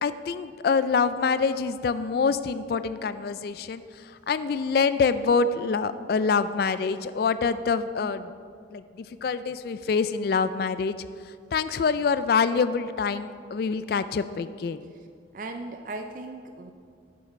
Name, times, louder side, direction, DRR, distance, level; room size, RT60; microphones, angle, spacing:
voice 1, 0.0-8.3 8.7-11.0 11.5-14.9, left 5 dB, 55° left, 13 dB, 0.3 m, -26 dB
voice 2, 15.3-16.7, right 2 dB, 45° right, 6 dB, 0.4 m, -37 dB
8.3 x 7.3 x 5.8 m, 2.3 s
head